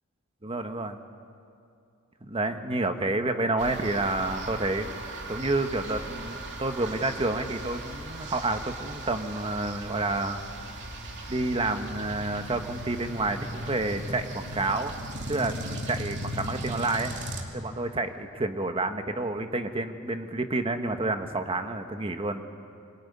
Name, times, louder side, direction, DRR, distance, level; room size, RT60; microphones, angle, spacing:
voice 1, 0.4-1.0 2.2-4.9 5.3-10.4 11.3-14.9 15.3-17.1 17.5-22.4, right 2 dB, 25° right, 7 dB, 1.3 m, -29 dB
sound 1, 3.6-17.4, right 1 dB, 55° right, 2.6 m, -38 dB
24.5 x 19.5 x 9.6 m, 2.6 s
head